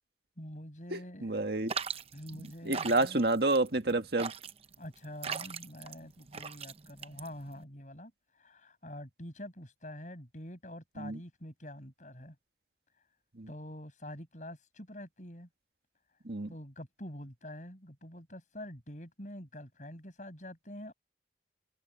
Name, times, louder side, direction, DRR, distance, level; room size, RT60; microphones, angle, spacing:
voice 1, 0.4-1.5 2.1-3.2 4.8-12.3 13.5-15.5 16.5-20.9, left 1 dB, 45° left, 7.9 m, -46 dB
voice 2, 0.9-1.7 2.4-4.3 11.0-11.2 13.4-13.5 16.3-16.5, right 2 dB, 60° right, 1.8 m, -29 dB
sound 1, 1.7-7.6, right 6 dB, 35° right, 0.8 m, -40 dB
open air
head